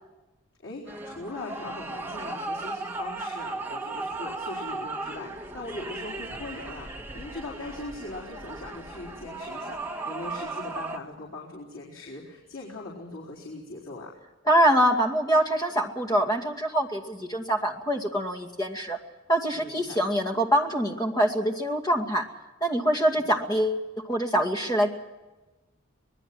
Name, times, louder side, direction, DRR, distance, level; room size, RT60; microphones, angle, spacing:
voice 1, 0.6-14.1 19.5-20.0 22.9-23.2, left 2 dB, 85° left, -4 dB, 4.4 m, -40 dB
sound 1, 0.9-11.0, right 2 dB, 10° right, 1.3 m, -36 dB
voice 2, 14.5-19.0 19.3-22.3 22.6-24.9, right 1 dB, 20° left, 3 dB, 2.3 m, -24 dB
26.0 x 20.0 x 6.1 m, 1.1 s
head